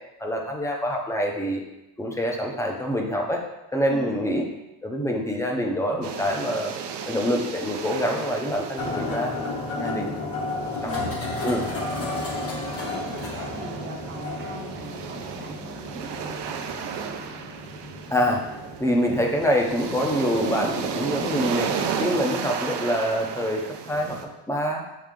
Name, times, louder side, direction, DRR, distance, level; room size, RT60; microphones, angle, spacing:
voice 1, 0.2-1.6 2.0-3.4 3.7-4.5 4.8-6.7 7.1-9.5 9.8-10.2 10.8-10.9 11.4-11.7 18.1-18.5 18.8-21.7 22.0-24.2 24.5-24.8, equal, 5° left, 1 dB, 0.7 m, -25 dB
voice 2, 3.9-4.3 9.7-10.2 10.8-11.2 11.9-12.3 12.8-17.1, right 3 dB, 25° right, 0 dB, 0.8 m, -40 dB
sound 1, 6.0-24.3, right 7 dB, 75° right, 0.7 m, -34 dB
sound 2, 8.8-22.0, left 2 dB, 35° left, 1.0 m, -34 dB
7.6 x 4.1 x 3.7 m, 0.94 s
cardioid pair, 180°, 42 cm